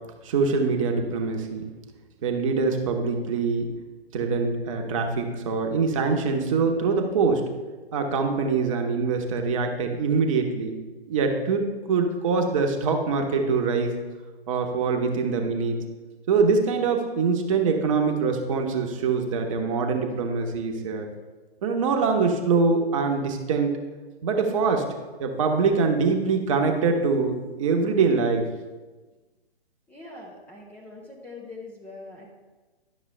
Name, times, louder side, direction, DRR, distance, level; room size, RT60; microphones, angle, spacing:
voice 1, 0.2-1.7 2.2-3.7 4.1-7.4 7.9-10.8 11.1-13.9 14.5-15.8 16.3-21.1 21.6-23.8 24.2-24.9 25.2-28.5, right 4 dB, 30° right, 3 dB, 1.1 m, -24 dB
voice 2, 29.9-32.3, left 3 dB, 5° left, -5 dB, 0.6 m, -42 dB
11.0 x 6.6 x 3.3 m, 1.3 s
figure-of-eight pair, 125°, 31 cm